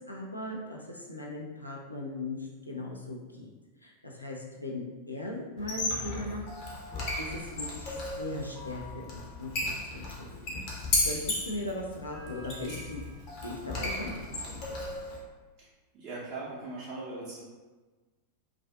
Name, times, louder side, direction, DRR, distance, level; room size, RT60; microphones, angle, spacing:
voice 1, 0.0-3.5 3.8-6.5 7.2-10.6 11.0-13.0 13.4-14.8, left 1 dB, 85° left, -2 dB, 0.4 m, -39 dB
Squeak, 5.6-15.2, left 2 dB, 40° left, 0.7 m, -35 dB
voice 2, 15.9-17.4, right 3 dB, 35° right, -8 dB, 0.5 m, -40 dB
2.4 x 2.3 x 2.3 m, 1.3 s
figure-of-eight pair, 90°, 0 cm